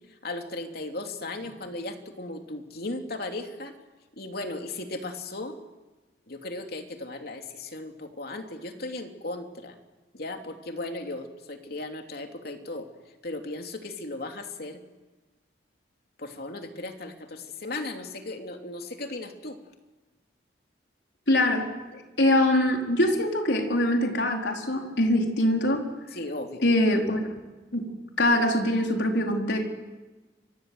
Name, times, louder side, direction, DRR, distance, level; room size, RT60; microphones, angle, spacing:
voice 1, 0.2-3.7 4.2-5.6 6.3-9.7 10.1-12.9 13.2-14.8 16.2-19.6 26.1-26.6, left 2 dB, 60° left, 4 dB, 3.1 m, -36 dB
voice 2, 21.3-21.7 21.9-25.8 26.6-27.2 27.7-27.9 28.2-29.6, left 1 dB, 80° left, 2 dB, 4.5 m, -23 dB
30.0 x 25.0 x 8.0 m, 1.2 s
head